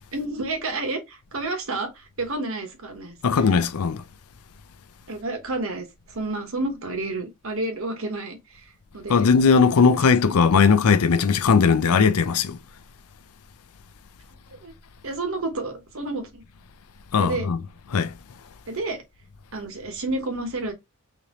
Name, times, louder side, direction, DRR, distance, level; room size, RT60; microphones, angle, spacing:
voice 1, 0.1-3.4 5.1-9.3 14.5-14.7 15.0-16.4 17.2-17.5 18.7-19.0 19.5-20.7, right 2 dB, 65° right, 1.2 m, -30 dB
voice 2, 3.2-4.0 9.1-12.6 17.1-17.6 17.9-18.1, left 5 dB, 90° left, 0.5 m, -18 dB
4.0 x 3.3 x 3.0 m
head